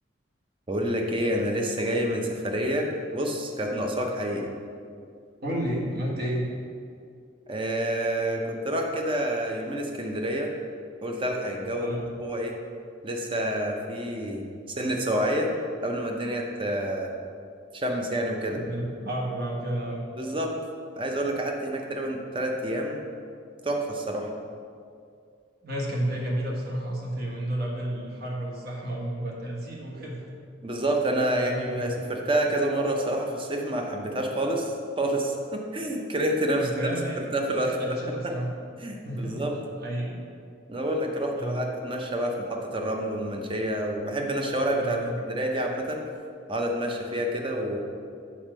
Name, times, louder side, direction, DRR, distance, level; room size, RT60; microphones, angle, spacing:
voice 1, 0.7-4.5 7.5-10.5 11.0-11.9 12.2-12.6 13.0-14.4 14.8-15.5 15.8-17.1 17.7-18.6 20.2-20.5 20.9-23.0 23.6-24.3 30.6-37.0 37.3-38.0 38.8-39.5 40.7-45.0 45.3-46.0 46.5-47.8, right 1 dB, 25° right, 1 dB, 0.7 m, -28 dB
voice 2, 5.4-6.4 11.8-12.1 18.5-20.0 25.6-30.2 31.3-32.0 36.6-37.2 37.6-38.5 39.0-39.5 39.8-40.2 41.4-41.7 44.8-45.2, right 1 dB, 50° right, -3 dB, 1.5 m, -31 dB
7.1 x 4.5 x 6.1 m, 2.3 s
head